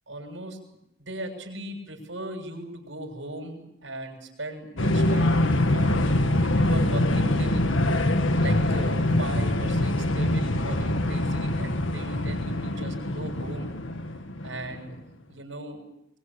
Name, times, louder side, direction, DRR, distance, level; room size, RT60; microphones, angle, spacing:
voice 1, 0.1-0.6 1.0-7.7 8.4-13.7 14.4-15.0 15.3-15.8, right 1 dB, 75° right, 3 dB, 7.1 m, -38 dB
sound 1, 4.8-14.8, left 1 dB, 80° left, 1.8 m, -24 dB
24.0 x 22.5 x 8.6 m, 0.82 s
head